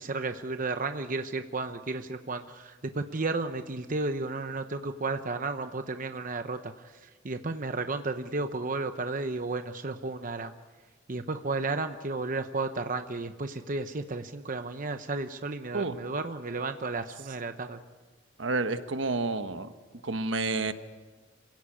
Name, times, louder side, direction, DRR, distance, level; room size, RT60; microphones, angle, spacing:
voice 1, 0.0-10.5 11.1-17.8, right 3 dB, 45° right, 8 dB, 0.9 m, -33 dB
voice 2, 18.4-19.7 20.0-20.7, right 3 dB, 75° right, 9 dB, 1.3 m, -29 dB
27.0 x 17.0 x 8.7 m, 1.3 s
head